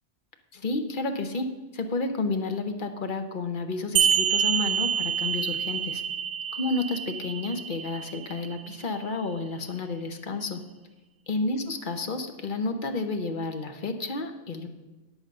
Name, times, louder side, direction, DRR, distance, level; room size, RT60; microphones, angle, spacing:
voice 1, 0.5-6.0 6.5-10.6 11.3-14.7, left 3 dB, 50° left, 6 dB, 1.0 m, -31 dB
sound 1, 4.0-9.0, right 8 dB, 60° right, 0.7 m, -27 dB
9.7 x 8.1 x 5.4 m, 1.2 s
omnidirectional pair, 1.2 m